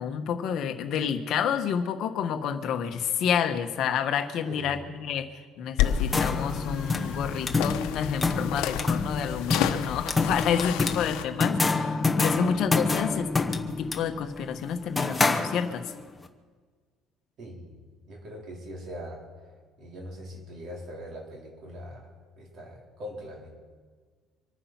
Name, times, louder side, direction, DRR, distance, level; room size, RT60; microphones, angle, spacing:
voice 1, 0.0-5.3 5.6-15.8, left 8 dB, 50° left, 7 dB, 1.2 m, -29 dB
voice 2, 4.4-4.8 17.4-19.2 19.8-23.5, equal, 40° right, -2 dB, 3.7 m, -42 dB
sound 1, 5.8-11.2, left 10 dB, 80° left, 0.9 m, -31 dB
sound 2, 5.8-16.0, left 3 dB, 10° left, 0.9 m, -28 dB
25.0 x 9.7 x 5.9 m, 1.6 s
cardioid pair, 170°, 0 cm